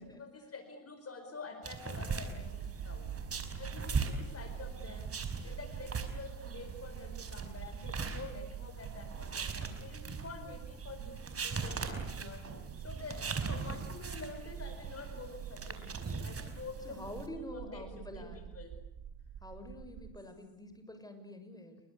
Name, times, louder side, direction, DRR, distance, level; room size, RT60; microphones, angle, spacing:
voice 1, 0.0-3.1 3.6-17.0 17.3-18.8, left 3 dB, 40° left, 8 dB, 4.9 m, -48 dB
sound 1, 1.6-17.3, right 5 dB, 40° right, 5.2 m, -40 dB
sound 2, 2.4-20.2, right 9 dB, 70° right, 1.9 m, -46 dB
voice 2, 16.8-18.4 19.4-21.8, left 1 dB, 10° left, 7 dB, 7.0 m, -47 dB
29.5 x 24.0 x 8.3 m, 0.82 s
cardioid pair, 100°, 36 cm